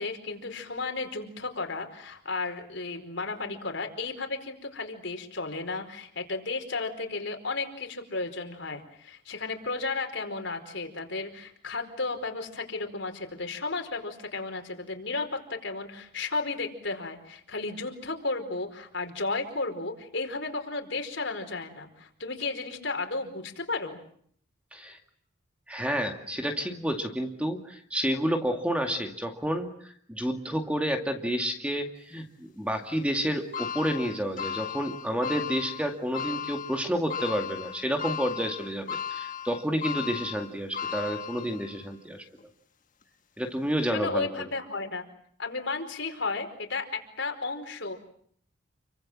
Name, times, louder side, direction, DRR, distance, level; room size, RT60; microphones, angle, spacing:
voice 1, 0.0-24.0 43.9-45.0 45.4-48.0, left 3 dB, 65° left, 5 dB, 4.7 m, -33 dB
voice 2, 25.7-42.2 43.4-44.3, equal, 5° right, 4 dB, 2.2 m, -30 dB
sound 1, 33.5-41.9 42.4-42.5 43.6-43.7, left 8 dB, 40° left, 1.6 m, -36 dB
30.0 x 24.0 x 7.5 m, 0.64 s
head